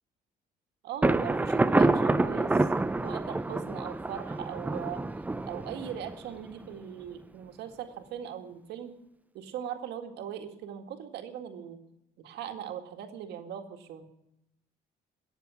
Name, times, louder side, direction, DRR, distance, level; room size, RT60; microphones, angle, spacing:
voice 1, 0.8-2.7 3.0-5.0 5.5-8.9 9.3-11.8 12.2-14.1, right 9 dB, 80° right, 5 dB, 1.9 m, -39 dB
Thunder, 1.0-6.7, right 2 dB, 10° right, 0.5 m, -27 dB
17.5 x 7.3 x 9.8 m, 0.86 s
cardioid pair, 110°, 17 cm